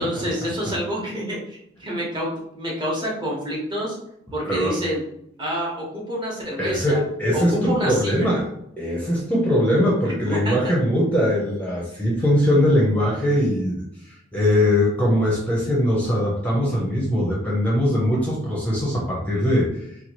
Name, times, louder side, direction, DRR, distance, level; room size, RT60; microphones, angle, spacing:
voice 1, 0.0-4.0 4.3-5.0 5.4-7.0 7.3-8.3 10.3-10.7 11.9-12.0, equal, 25° right, -4 dB, 0.9 m, -27 dB
voice 2, 6.6-7.6 7.8-8.5 8.8-19.7, equal, 10° left, -4 dB, 0.6 m, -21 dB
2.9 x 2.3 x 3.0 m, 0.76 s
head